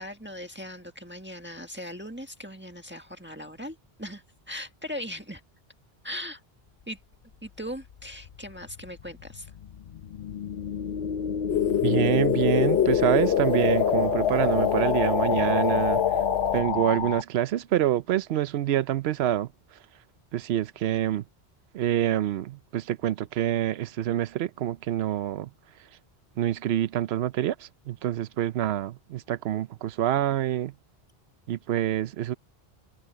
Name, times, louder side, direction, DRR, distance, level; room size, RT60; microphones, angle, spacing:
voice 1, 0.0-5.4 6.0-6.4 6.9-7.0 7.4-9.5, equal, 10° right, 1.6 m, -39 dB
sound 1, 7.9-17.2, left 8 dB, 60° left, 0.7 m, -29 dB
sound 2, 11.5-16.6, left 7 dB, 85° left, 1.2 m, -26 dB
voice 2, 11.8-16.0 16.5-19.5 20.3-21.2 21.7-25.5 26.4-30.7 31.5-32.4, right 12 dB, 80° right, 0.9 m, -26 dB
omnidirectional pair, 1.1 m